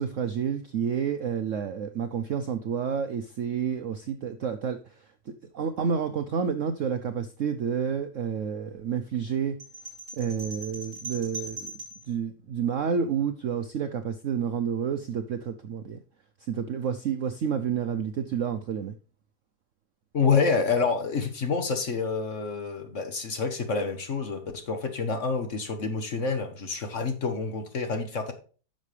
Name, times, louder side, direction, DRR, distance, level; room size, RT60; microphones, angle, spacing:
voice 1, 0.0-5.1 5.5-9.6 10.2-11.7 12.1-16.0 16.4-19.0, right 7 dB, 65° right, 8 dB, 0.8 m, -29 dB
sound 1, 9.6-12.1, right 2 dB, 45° right, 5.2 m, -40 dB
voice 2, 20.1-28.3, left 5 dB, 45° left, 7 dB, 1.3 m, -28 dB
10.5 x 6.5 x 3.3 m, 0.37 s
omnidirectional pair, 2.0 m